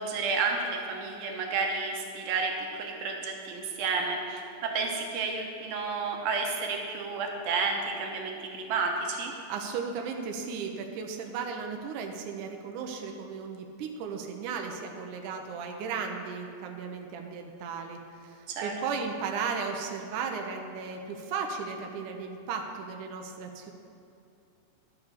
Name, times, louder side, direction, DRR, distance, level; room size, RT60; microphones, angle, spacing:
voice 1, 0.0-9.3 18.5-18.7, right 4 dB, 90° right, 1 dB, 2.9 m, -31 dB
voice 2, 9.5-23.7, right 5 dB, 75° right, 3 dB, 2.2 m, -35 dB
12.5 x 6.9 x 6.7 m, 2.5 s
omnidirectional pair, 4.0 m